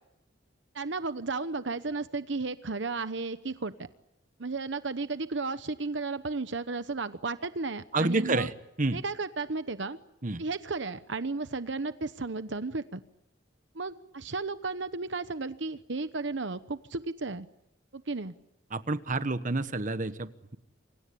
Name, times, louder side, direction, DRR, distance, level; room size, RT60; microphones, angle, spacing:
voice 1, 0.7-3.9 4.4-8.5 8.9-10.0 10.4-13.0 13.7-17.5 17.9-18.3, right 3 dB, 70° right, 12 dB, 1.0 m, -34 dB
voice 2, 7.9-8.5 8.8-9.0 10.2-10.4 18.7-20.6, right 2 dB, 45° right, 11 dB, 1.3 m, -29 dB
28.0 x 24.5 x 8.6 m, 0.83 s
head